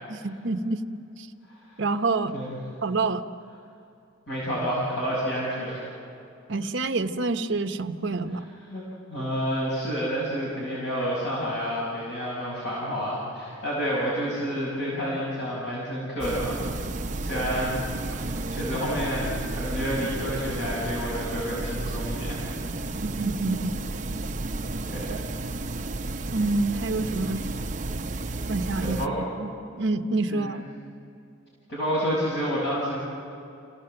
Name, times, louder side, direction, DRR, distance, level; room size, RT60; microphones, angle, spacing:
voice 1, 0.1-0.8 1.2-1.3 1.8-2.3 2.8-3.2 6.5-8.4 23.0-23.8 25.1-25.2 26.3-27.5 28.5-29.5 29.8-30.6, right 3 dB, 65° right, 7 dB, 1.0 m, -27 dB
voice 2, 4.3-5.9 8.7-8.8 9.1-17.8 18.0-22.4 24.8-25.2 28.8-29.3 30.3-30.6 31.7-33.0, equal, 55° left, -6 dB, 6.2 m, -29 dB
sound 1, 16.2-29.1, right 2 dB, 35° right, 0.7 m, -32 dB
28.0 x 17.5 x 7.9 m, 2.7 s
head